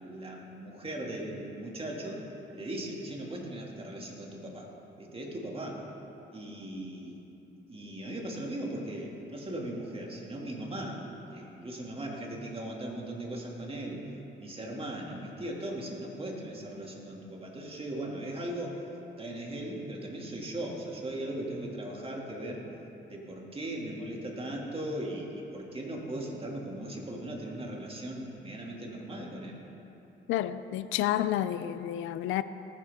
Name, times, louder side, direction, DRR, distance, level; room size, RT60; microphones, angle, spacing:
voice 1, 0.0-2.2 2.5-4.7 5.0-5.8 6.3-7.2 7.7-11.0 11.3-14.0 14.4-18.8 19.2-22.7 23.1-29.6, right 1 dB, 30° right, 2.4 m, -38 dB
voice 2, 30.3-32.4, left 12 dB, 85° left, 0.4 m, -30 dB
18.5 x 9.6 x 3.7 m
cardioid pair, 90°, 20 cm